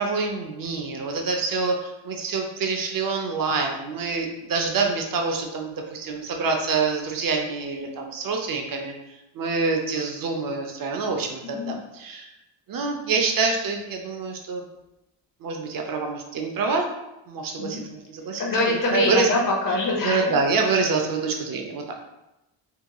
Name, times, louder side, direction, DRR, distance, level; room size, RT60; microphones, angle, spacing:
voice 1, 0.0-8.9 9.3-12.3 12.7-14.6 15.4-16.9 17.3-19.3 20.0-22.0, right 4 dB, 50° right, 3 dB, 0.6 m, -26 dB
voice 2, 11.4-11.8 13.1-13.4 17.6-17.8 18.4-20.4, left 2 dB, 45° left, -2 dB, 0.8 m, -25 dB
2.8 x 2.8 x 2.3 m, 0.93 s
cardioid pair, 90°, 46 cm